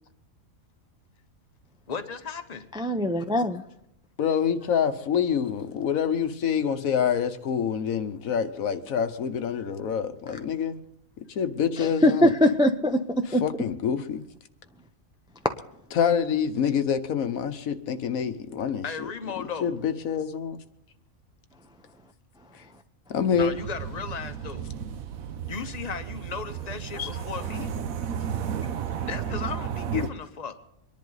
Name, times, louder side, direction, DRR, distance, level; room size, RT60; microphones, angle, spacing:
voice 1, 1.9-2.7 18.8-19.7 23.4-24.7 25.4-27.7 29.0-30.5, left 5 dB, 35° left, 8 dB, 0.9 m, -36 dB
voice 2, 2.7-3.6 11.8-13.0 13.3-13.4 27.0-27.1, left 1 dB, 5° right, 6 dB, 0.3 m, -22 dB
voice 3, 4.2-10.8 11.3-12.3 13.4-14.2 15.9-18.8 19.6-20.6 23.1-23.5 27.1-27.2 29.9-30.1, left 7 dB, 80° left, 9 dB, 1.3 m, -26 dB
sound 1, 23.3-30.1, right 8 dB, 80° right, 1.2 m, -33 dB
24.5 x 10.5 x 4.0 m, 0.78 s
omnidirectional pair, 1.4 m